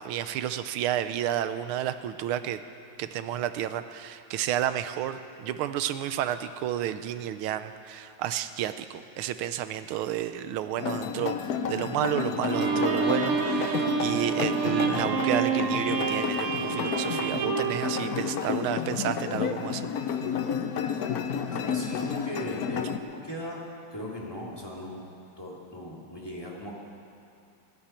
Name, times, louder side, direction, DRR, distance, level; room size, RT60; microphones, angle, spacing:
voice 1, 0.0-2.6 3.0-19.8, right 11 dB, 85° right, 11 dB, 1.5 m, -31 dB
sound 1, 10.8-23.0, left 7 dB, 65° left, 0.9 m, -31 dB
Bowed string instrument, 12.5-18.8, right 6 dB, 50° right, 1.1 m, -29 dB
voice 2, 21.5-23.6 23.9-26.7, left 1 dB, 10° left, -4 dB, 2.3 m, -38 dB
21.0 x 16.0 x 4.4 m, 2.6 s
omnidirectional pair, 2.3 m